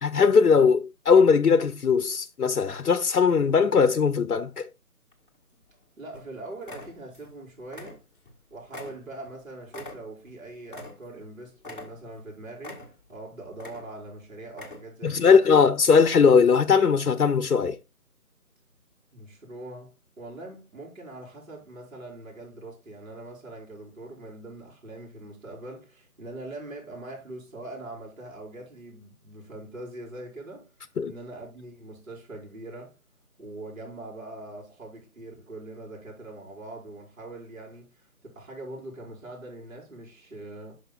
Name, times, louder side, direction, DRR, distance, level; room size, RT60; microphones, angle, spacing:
voice 1, 0.0-4.7 15.0-17.8 31.0-31.1, left 5 dB, 85° left, 0.7 m, -19 dB
sound 1, 5.1-5.8 6.1-6.3 6.6-7.4 7.6-8.4 8.7-11.3 11.6-12.2 12.6-13.2 13.5-14.1 14.5-15.1 15.5-15.6, left 2 dB, 35° left, 1.8 m, -44 dB
voice 2, 6.0-8.0 8.5-15.4 19.1-30.7 31.1-33.0 33.4-40.7, right 2 dB, 60° right, 4.7 m, -42 dB
11.5 x 5.9 x 2.3 m
figure-of-eight pair, 165°, 45 cm